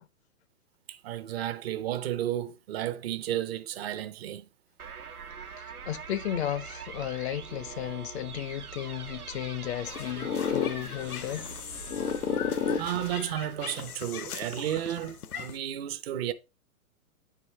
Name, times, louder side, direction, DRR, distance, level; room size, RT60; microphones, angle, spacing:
voice 1, 0.9-4.5 12.8-16.3, right 11 dB, 45° right, 0.7 m, -33 dB
sound 1, 4.8-13.2, right 7 dB, 90° right, 1.1 m, -43 dB
voice 2, 5.6-11.5, left 12 dB, 50° left, 0.5 m, -34 dB
sound 2, 9.9-15.5, left 7 dB, 85° left, 0.8 m, -33 dB
9.3 x 4.7 x 3.2 m
hypercardioid pair, 125°, 43 cm